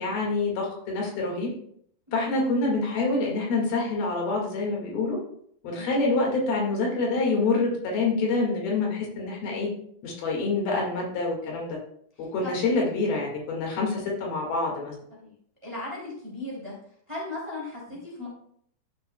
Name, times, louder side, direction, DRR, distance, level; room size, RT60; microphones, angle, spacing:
voice 1, 0.0-1.5 2.1-5.2 5.6-9.7 10.0-11.8 12.3-14.9, left 3 dB, 75° left, -2 dB, 3.7 m, -26 dB
voice 2, 15.6-16.7 17.1-18.3, left 2 dB, 10° right, -5 dB, 1.9 m, -37 dB
12.5 x 6.1 x 2.2 m, 0.65 s
omnidirectional pair, 4.3 m